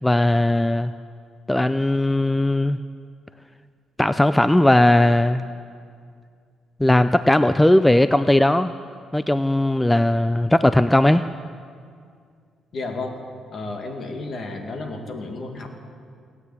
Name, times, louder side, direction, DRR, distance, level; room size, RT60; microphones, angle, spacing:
voice 1, 0.0-0.9 1.5-2.8 4.0-5.4 6.8-8.7 9.1-11.2, left 1 dB, 10° left, 12 dB, 0.4 m, -18 dB
voice 2, 12.7-13.2 13.5-15.7, left 2 dB, 55° left, 3 dB, 2.1 m, -32 dB
17.5 x 9.6 x 8.2 m, 2.2 s
cardioid pair, 95°, 0 cm